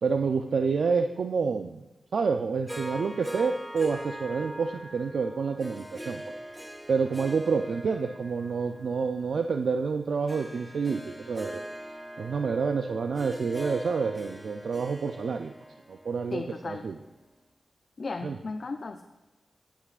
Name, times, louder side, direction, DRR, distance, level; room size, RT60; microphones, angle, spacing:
voice 1, 0.0-1.8 2.1-6.2 6.9-11.6 12.2-15.5 15.9-17.0 18.2-18.4, right 5 dB, 70° right, 6 dB, 0.3 m, -28 dB
Harp, 2.7-17.1, equal, 5° right, 0.6 m, -42 dB
voice 2, 16.3-16.8 18.0-19.0, left 3 dB, 45° left, 6 dB, 0.4 m, -35 dB
16.5 x 5.9 x 2.4 m, 1.1 s
wide cardioid pair, 150°, 0 cm